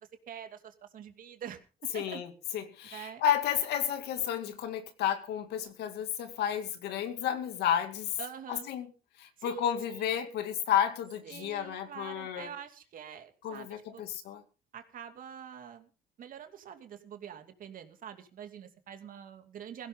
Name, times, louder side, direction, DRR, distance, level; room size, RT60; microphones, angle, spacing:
voice 1, 0.3-2.2 2.9-3.2 8.2-8.7 9.4-10.1 11.2-14.0 14.7-15.9 16.2-19.9, right 8 dB, 55° right, 2.6 m, -45 dB
voice 2, 1.9-8.2 8.5-8.9 9.2-12.5 13.4-14.4, left 9 dB, 80° left, 2.4 m, -32 dB
16.5 x 16.5 x 3.7 m
cardioid pair, 110°, 17 cm